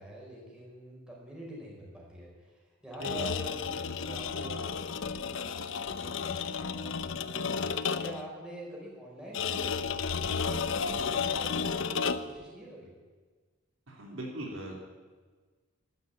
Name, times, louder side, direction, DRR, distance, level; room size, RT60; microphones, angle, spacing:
voice 1, 0.0-7.6 8.0-12.9, right 1 dB, 5° right, -4 dB, 5.0 m, -46 dB
sound 1, 2.9-8.3 9.3-12.4, left 5 dB, 65° left, 0.7 m, -32 dB
voice 2, 13.9-14.8, equal, 65° right, 0 dB, 3.1 m, -39 dB
12.5 x 12.0 x 8.7 m, 1.4 s
head